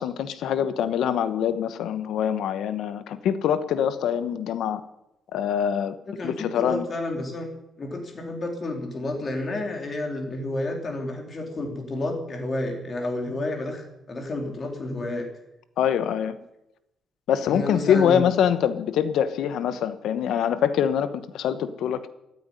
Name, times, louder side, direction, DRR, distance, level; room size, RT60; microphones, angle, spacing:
voice 1, 0.0-4.8 5.3-5.9 6.2-6.8 15.8-16.4 17.3-22.1, left 9 dB, 70° left, 12 dB, 1.1 m, -24 dB
voice 2, 6.1-7.5 7.8-15.3 17.5-18.3, left 2 dB, 30° left, 3 dB, 3.2 m, -30 dB
14.5 x 9.6 x 9.8 m, 0.88 s
cardioid pair, 175°, 0 cm